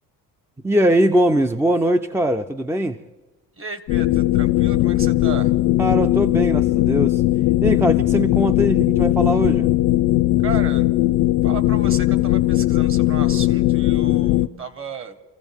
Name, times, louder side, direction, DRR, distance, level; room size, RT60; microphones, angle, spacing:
voice 1, 0.6-3.0 5.8-7.2 7.6-9.7, equal, 5° right, 7 dB, 0.5 m, -20 dB
voice 2, 3.6-5.5 10.4-10.8 11.4-15.2, right 5 dB, 40° right, 10 dB, 1.5 m, -34 dB
sound 1, 3.9-14.5, left 16 dB, 75° left, 0.5 m, -18 dB
27.0 x 15.0 x 3.6 m, 1.1 s
cardioid pair, 100°, 35 cm